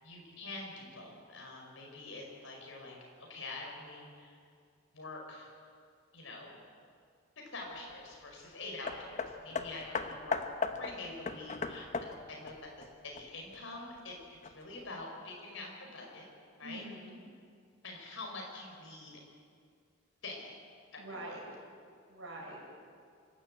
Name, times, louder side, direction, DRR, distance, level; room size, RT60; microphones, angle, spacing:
voice 1, 0.0-4.4 4.9-5.5 6.1-6.6 7.5-10.4 10.7-14.2 14.4-16.3 16.6-16.8 17.8-19.2 20.2-20.6 20.9-21.4, left 2 dB, 70° left, -1 dB, 5.2 m, -46 dB
Hammer, 8.9-13.6 14.4-14.5, left 4 dB, 35° left, 1.0 m, -37 dB
voice 2, 16.6-17.2 21.0-21.4 22.1-22.8, right 1 dB, 70° right, -3 dB, 6.9 m, -45 dB
25.5 x 12.0 x 8.7 m, 2.2 s
head